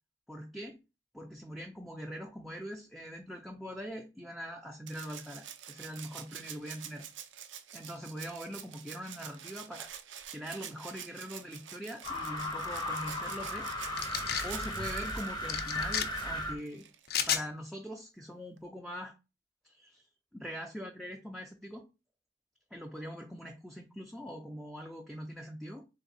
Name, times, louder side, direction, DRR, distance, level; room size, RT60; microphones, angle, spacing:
voice 1, 0.3-0.8 1.1-7.0 7.7-9.9 10.3-13.7 14.4-16.8 17.3-19.1 19.6-20.1 20.3-21.8 22.7-25.9, equal, ahead, 1 dB, 0.4 m, -42 dB
Rattle (instrument), 4.9-17.2 18.6-18.7, right 9 dB, 85° right, 0.6 m, -47 dB
sound 1, 12.0-16.6, left 1 dB, 25° left, 0.8 m, -36 dB
sound 2, 14.0-14.5 15.5-16.1 17.1-17.4, left 8 dB, 55° left, 0.5 m, -31 dB
3.5 x 3.4 x 4.0 m, 0.29 s
head